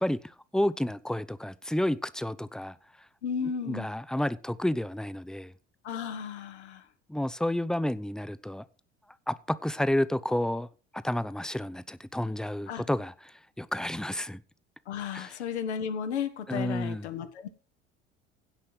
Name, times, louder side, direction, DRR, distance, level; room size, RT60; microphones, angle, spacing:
voice 1, 0.0-2.8 3.4-5.5 7.1-8.6 9.3-10.7 10.9-14.4 15.1-15.3 16.5-17.1, left 1 dB, ahead, 0.7 m, -30 dB
voice 2, 3.2-3.9 5.8-6.8 12.7-12.8 14.9-17.5, left 7 dB, 70° left, 1.7 m, -34 dB
16.5 x 5.7 x 5.0 m
figure-of-eight pair, 65°, 35 cm